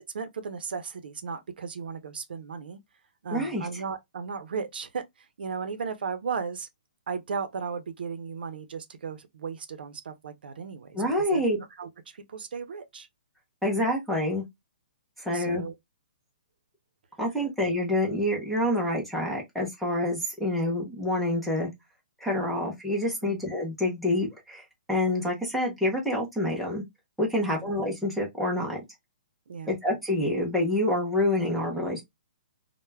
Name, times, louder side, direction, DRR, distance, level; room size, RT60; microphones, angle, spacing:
voice 1, 0.1-2.8 3.2-6.7 7.1-13.1 15.2-15.8 23.2-23.4 27.4-27.7 29.5-29.7, right 5 dB, 80° right, 0.5 m, -36 dB
voice 2, 3.3-3.7 10.9-11.6 13.6-14.4 15.2-15.6 17.2-21.7 22.2-24.6 24.9-26.8 27.2-28.8 29.7-32.0, left 1 dB, ahead, 0.4 m, -27 dB
2.2 x 2.1 x 3.1 m
hypercardioid pair, 175°, 5 cm